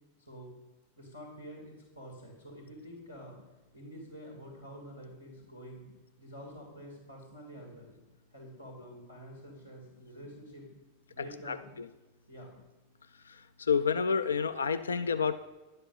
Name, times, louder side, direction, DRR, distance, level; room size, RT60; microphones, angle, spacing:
voice 1, 0.2-0.5 1.0-3.4 3.7-5.8 6.2-8.0 8.3-10.6 11.1-11.7 12.3-12.5, equal, 90° left, -2 dB, 2.8 m, -48 dB
voice 2, 13.7-15.4, left 6 dB, 70° left, 13 dB, 0.4 m, -28 dB
11.5 x 7.7 x 5.6 m, 1.1 s
figure-of-eight pair, 90°, 0 cm